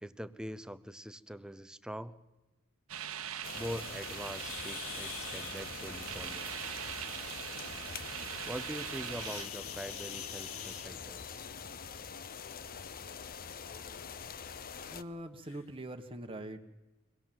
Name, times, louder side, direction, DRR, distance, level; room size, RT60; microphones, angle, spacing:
voice 1, 0.0-2.2 3.5-6.5 8.5-11.4, equal, 5° right, 14 dB, 0.7 m, -43 dB
sound 1, 2.9-9.5, right 9 dB, 70° right, 1.0 m, -41 dB
sound 2, 3.4-15.0, left 6 dB, 40° left, 0.8 m, -45 dB
sound 3, 4.3-5.6 9.1-11.3 12.6-12.7 13.3-13.4 14.0-14.1 14.9-15.0 15.4-15.6, left 9 dB, 70° left, 1.7 m, -45 dB
voice 2, 14.9-16.7, right 1 dB, 25° right, 4 dB, 1.3 m, -43 dB
25.0 x 18.5 x 7.6 m, 1.1 s
head